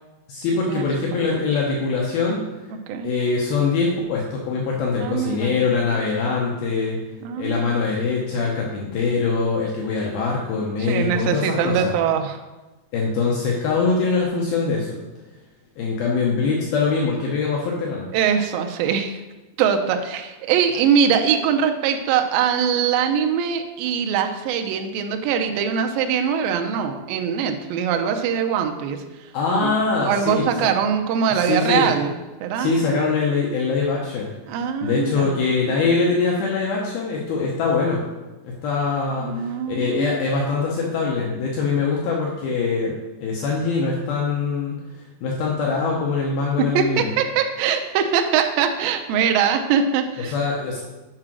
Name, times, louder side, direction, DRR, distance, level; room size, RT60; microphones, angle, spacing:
voice 1, 0.3-2.5 3.0-7.0 7.4-11.9 12.9-15.0 15.8-18.1 29.3-30.7 31.3-32.0 32.6-34.3 34.6-38.0 38.4-44.8 45.2-47.1 50.2-50.8, left 4 dB, 75° left, -3 dB, 2.6 m, -23 dB
voice 2, 5.0-5.6 7.2-7.6 10.9-12.4 18.1-19.2 19.6-29.0 29.5-29.7 30.0-32.1 32.4-32.7 34.5-35.4 39.2-40.3 46.6-50.3, right 7 dB, 85° right, 5 dB, 2.1 m, -22 dB
7.6 x 4.9 x 6.1 m, 1.1 s
omnidirectional pair, 4.8 m